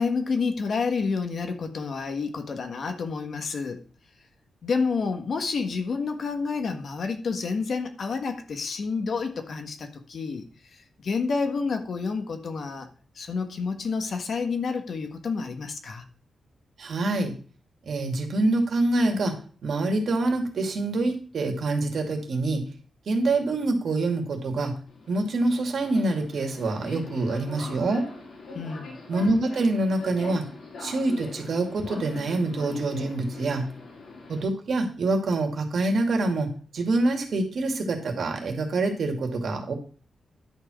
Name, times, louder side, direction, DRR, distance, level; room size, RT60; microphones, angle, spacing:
voice 1, 0.0-3.8 4.6-10.5 10.7-12.9 13.1-16.1 28.5-29.0, left 4 dB, 60° left, 1.5 m, -29 dB
voice 2, 16.8-17.4 17.9-19.4 19.6-22.7 23.1-24.8 25.1-28.0 29.1-30.4 30.8-33.7 34.3-39.7, right 2 dB, 65° right, 2.3 m, -26 dB
Subway metro underground, 24.9-34.4, left 3 dB, 75° left, 4.3 m, -41 dB
11.0 x 4.7 x 6.3 m
cardioid pair, 100°, 0 cm